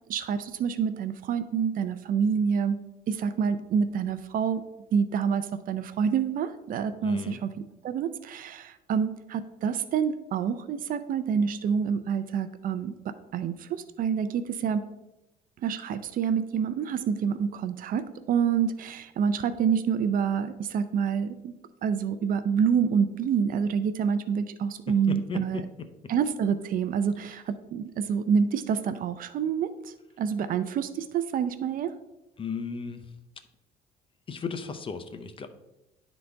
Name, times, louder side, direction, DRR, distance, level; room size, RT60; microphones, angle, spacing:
voice 1, 0.1-2.8 3.1-4.6 4.9-7.5 7.8-13.0 13.3-14.8 15.6-21.5 21.8-25.6 26.1-31.9, right 7 dB, 55° right, 12 dB, 0.5 m, -27 dB
voice 2, 7.0-7.4 25.1-25.6 32.4-33.0 34.3-35.5, left 5 dB, 30° left, 9 dB, 0.6 m, -35 dB
10.5 x 4.0 x 3.4 m, 0.96 s
cardioid pair, 110°, 17 cm